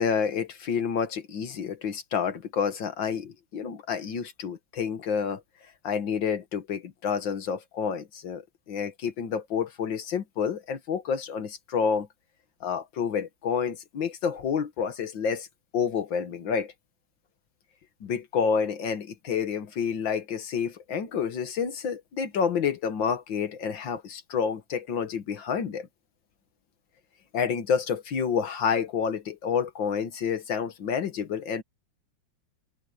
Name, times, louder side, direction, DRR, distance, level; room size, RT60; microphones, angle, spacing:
voice 1, 0.0-5.4 5.8-8.4 8.7-12.1 12.6-15.5 15.7-16.7 18.0-25.9 27.3-31.6, left 6 dB, 75° left, 2.1 m, -29 dB
open air
omnidirectional pair, 2.1 m